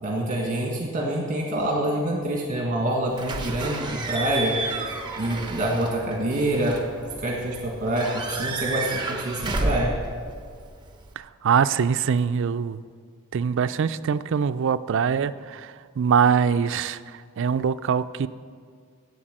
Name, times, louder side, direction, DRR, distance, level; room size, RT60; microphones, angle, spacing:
voice 1, 0.0-4.5 5.2-6.8 7.2-9.9, right 1 dB, 35° right, -1 dB, 1.5 m, -26 dB
Slam / Squeak / Alarm, 3.2-11.1, right 3 dB, 20° right, 1.0 m, -32 dB
voice 2, 11.2-12.8 13.3-18.3, right 7 dB, 60° right, 13 dB, 0.4 m, -23 dB
10.0 x 7.9 x 7.6 m, 2.1 s
head